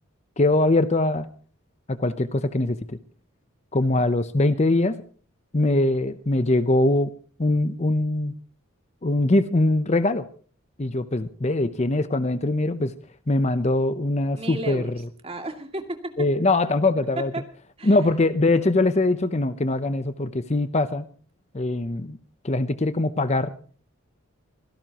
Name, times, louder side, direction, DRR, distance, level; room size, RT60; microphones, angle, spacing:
voice 1, 0.4-1.3 1.9-3.0 3.7-5.0 5.5-7.1 7.4-8.3 9.0-10.2 10.8-12.9 13.3-14.8 16.2-17.3 17.8-21.1 21.5-22.2 22.4-23.5, left 2 dB, 30° left, 12 dB, 0.8 m, -22 dB
voice 2, 14.4-16.1 17.3-17.4 17.8-18.0, right 2 dB, 25° right, 5 dB, 2.5 m, -34 dB
25.0 x 17.0 x 3.0 m, 0.42 s
head